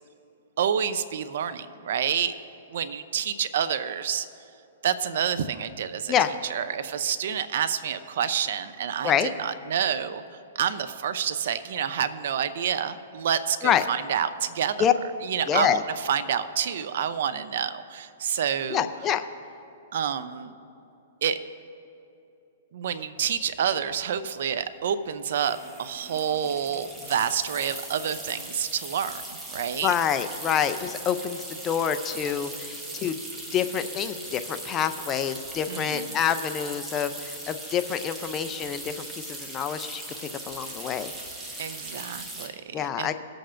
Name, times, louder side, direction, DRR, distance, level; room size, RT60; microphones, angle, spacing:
voice 1, 0.6-2.3 2.7-4.3 4.8-6.1 6.5-10.2 10.5-14.8 15.2-15.8 16.0-18.9 19.9-20.5 21.2-21.4 22.7-29.2 29.5-29.9 35.7-36.2 41.6-43.1, right 8 dB, 65° right, 12 dB, 0.5 m, -28 dB
voice 2, 15.5-15.8 18.7-19.2 29.8-33.2 33.5-40.0 40.5-41.1 42.7-43.1, left 9 dB, 20° left, 10 dB, 0.4 m, -26 dB
sound 1, 23.4-23.5 23.7-24.0 25.3-42.5, right 2 dB, 10° right, 1.1 m, -39 dB
20.5 x 7.7 x 2.5 m, 2.8 s
hypercardioid pair, 150°, 0 cm